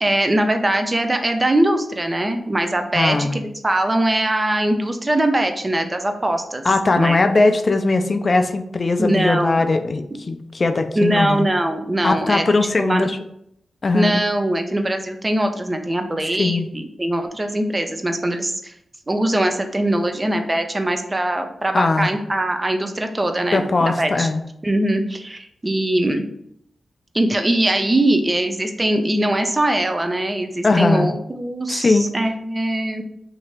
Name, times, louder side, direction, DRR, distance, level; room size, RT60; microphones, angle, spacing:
voice 1, 0.0-6.6 6.9-7.2 9.0-9.6 10.9-13.1 13.9-18.7 19.1-24.3 24.6-26.2 27.1-33.0, right 1 dB, 25° right, 6 dB, 0.6 m, -21 dB
voice 2, 2.9-3.4 6.6-11.5 12.0-13.2 13.8-14.2 16.4-16.7 21.7-22.1 23.5-24.4 30.6-31.1 31.7-32.1, left 3 dB, 50° left, 7 dB, 0.4 m, -19 dB
3.0 x 2.8 x 4.5 m, 0.75 s
cardioid pair, 45°, 0 cm